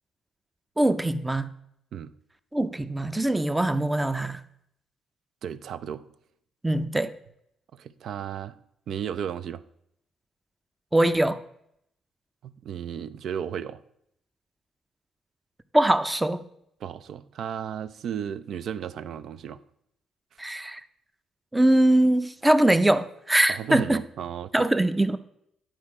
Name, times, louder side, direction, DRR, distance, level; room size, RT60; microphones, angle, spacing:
voice 1, 0.8-1.5 2.5-4.4 6.6-7.1 10.9-11.4 15.7-16.4 20.4-20.8 21.5-24.0 24.5-25.2, right 1 dB, 10° right, 0.5 m, -22 dB
voice 2, 5.4-6.1 7.7-8.6 8.9-9.6 12.4-13.8 16.8-19.6 23.5-24.7, right 8 dB, 65° right, 0.4 m, -34 dB
10.5 x 4.3 x 4.8 m
cardioid pair, 90°, 0 cm